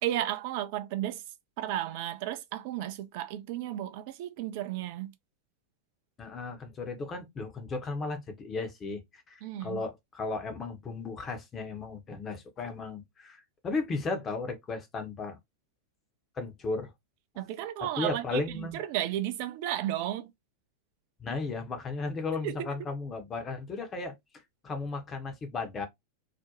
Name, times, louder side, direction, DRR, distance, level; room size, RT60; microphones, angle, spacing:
voice 1, 0.0-1.2 1.6-5.1 9.4-9.8 17.4-20.3 22.4-22.7, right 12 dB, 45° right, 0.4 m, -33 dB
voice 2, 6.2-15.4 16.4-16.9 18.0-18.8 21.2-24.1 24.6-25.9, left 3 dB, 25° left, 0.7 m, -35 dB
2.4 x 2.1 x 2.8 m
figure-of-eight pair, 90°, 0 cm